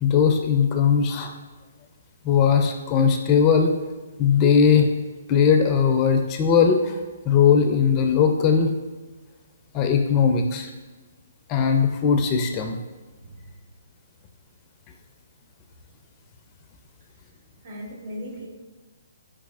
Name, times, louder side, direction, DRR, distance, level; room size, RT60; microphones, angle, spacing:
voice 1, 0.0-1.3 2.2-3.7 4.2-4.9 5.3-7.0 7.3-8.7 9.7-10.7 11.5-12.8, left 6 dB, 25° left, 4 dB, 0.4 m, -19 dB
voice 2, 17.6-18.5, equal, 55° right, -4 dB, 1.5 m, -37 dB
4.6 x 4.1 x 2.4 m, 1.3 s
hypercardioid pair, 145°, 0 cm